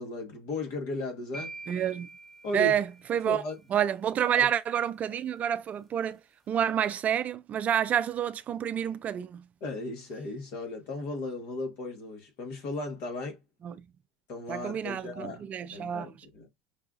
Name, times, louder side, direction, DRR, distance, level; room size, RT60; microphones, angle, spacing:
voice 1, 0.0-1.5 2.4-2.8 3.3-3.6 4.3-4.5 9.6-13.4 14.3-15.5 15.7-16.5, left 2 dB, 60° left, 1.5 m, -36 dB
sound 1, 1.3-3.5, right 2 dB, 5° left, 0.8 m, -45 dB
voice 2, 1.7-2.1 2.5-3.4 3.7-6.2 6.5-9.5 13.6-13.9 14.5-16.1, right 9 dB, 40° right, 0.4 m, -29 dB
5.5 x 2.4 x 2.5 m
hypercardioid pair, 90°, 4 cm